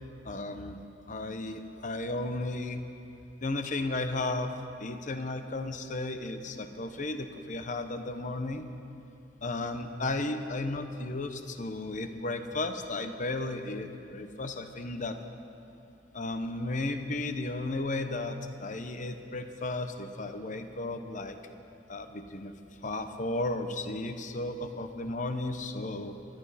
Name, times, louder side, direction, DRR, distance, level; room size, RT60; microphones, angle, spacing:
voice 1, 0.2-2.8 3.4-4.5 4.8-8.7 9.4-15.2 16.1-21.4 21.9-22.5 22.8-26.1, left 2 dB, 45° left, 8 dB, 0.9 m, -34 dB
25.5 x 11.5 x 4.2 m, 2.7 s
head